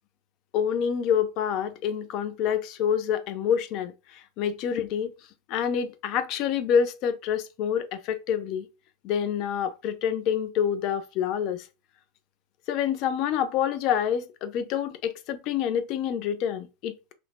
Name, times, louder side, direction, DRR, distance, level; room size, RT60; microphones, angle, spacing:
voice 1, 0.5-5.1 5.5-8.7 9.0-11.6 12.7-17.1, left 8 dB, 45° left, 0.4 m, -27 dB
3.1 x 2.0 x 2.3 m
supercardioid pair, 145°, 0 cm